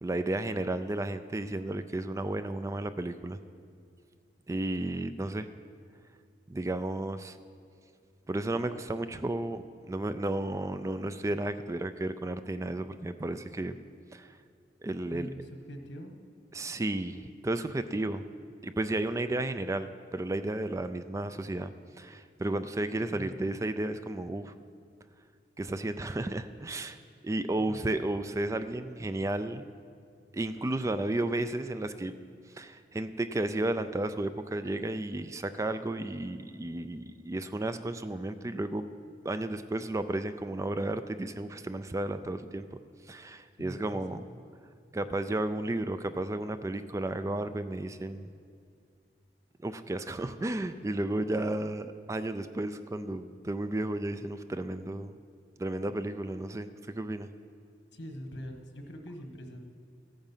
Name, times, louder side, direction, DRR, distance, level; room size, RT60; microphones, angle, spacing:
voice 1, 0.0-3.4 4.5-5.5 6.5-7.4 8.3-13.8 14.1-14.4 14.8-15.3 16.5-18.2 18.6-24.5 25.6-27.0 27.2-29.7 30.3-32.1 32.5-38.9 39.2-42.8 43.1-44.2 44.9-48.3 49.6-55.1 55.6-57.3, right 2 dB, 20° right, 11 dB, 0.3 m, -33 dB
voice 2, 15.1-16.2 23.1-23.4 27.6-27.8 43.6-44.2 57.9-59.6, equal, 85° left, 4 dB, 1.4 m, -43 dB
14.5 x 9.0 x 5.6 m, 2.2 s
head